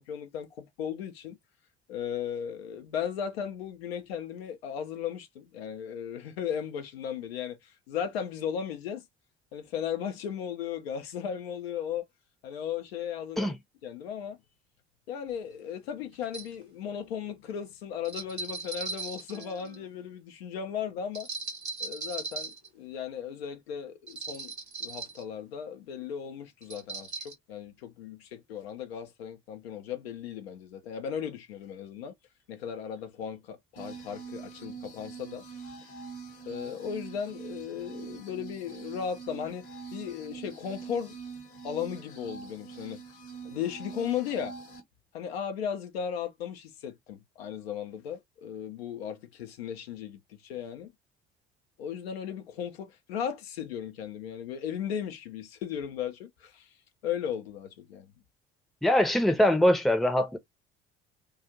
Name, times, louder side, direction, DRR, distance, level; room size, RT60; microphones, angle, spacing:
voice 1, 0.0-1.4 1.9-9.0 9.5-12.0 12.4-13.5 13.8-14.4 15.1-21.3 21.8-24.5 24.8-32.1 32.5-35.4 36.4-41.1 41.6-43.0 43.4-44.5 45.1-50.9 51.8-56.7 57.0-58.1, left 8 dB, 70° left, 0.7 m, -36 dB
sound 1, 15.3-15.4 16.2-16.5 18.0-19.9 21.1-22.7 24.1-25.2 26.6-27.3, right 4 dB, 90° right, 0.7 m, -38 dB
sound 2, 33.8-44.8, right 5 dB, 45° left, 1.1 m, -44 dB
voice 2, 58.8-60.4, left 1 dB, ahead, 0.6 m, -23 dB
2.4 x 2.4 x 2.7 m
figure-of-eight pair, 55°, 32 cm